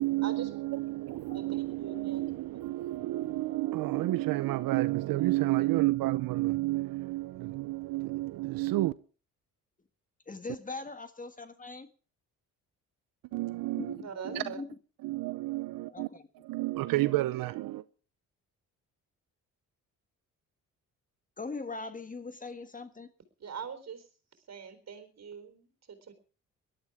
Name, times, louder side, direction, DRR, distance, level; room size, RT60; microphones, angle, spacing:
voice 1, 0.0-8.9 13.3-14.0 14.3-14.4 15.0-16.1 16.4-17.8, right 18 dB, 85° right, 0.7 m, -30 dB
voice 2, 1.8-2.3 2.5-2.6 14.0-14.6 23.4-24.1 24.5-26.1, right 6 dB, 50° right, 4.0 m, -42 dB
voice 3, 10.3-11.9 13.8-14.7 15.9-16.3 21.4-23.1, left 3 dB, 25° left, 1.6 m, -41 dB
18.5 x 12.5 x 4.9 m
cardioid pair, 90°, 33 cm